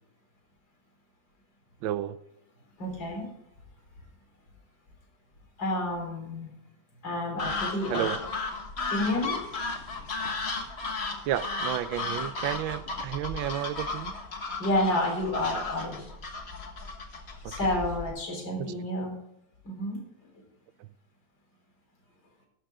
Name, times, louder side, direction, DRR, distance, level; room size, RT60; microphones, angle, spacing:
voice 1, 1.8-2.2 7.9-8.2 11.2-14.1 17.4-17.5 18.6-18.7 20.8-20.9, right 12 dB, 90° right, 1.5 m, -32 dB
voice 2, 2.8-3.3 5.6-6.5 7.0-8.1 8.9-9.4 14.6-16.0 17.5-19.2 19.6-20.0 20.3-20.4, left 1 dB, 70° left, 4.5 m, -30 dB
sound 1, 7.4-18.1, left 3 dB, 35° left, 1.4 m, -35 dB
13.0 x 11.0 x 3.5 m
omnidirectional pair, 2.1 m